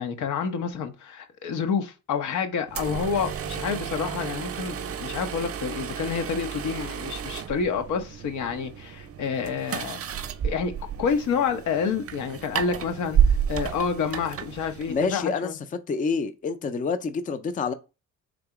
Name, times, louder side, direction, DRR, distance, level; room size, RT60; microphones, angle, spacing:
voice 1, 0.0-10.7 11.0-15.6, left 6 dB, 80° left, 0.9 m, -29 dB
sound 1, 2.7-15.2, right 8 dB, 50° right, 0.6 m, -31 dB
voice 2, 14.9-15.5 15.9-17.7, left 5 dB, 25° left, 0.5 m, -27 dB
3.8 x 2.9 x 4.7 m
cardioid pair, 90°, 30 cm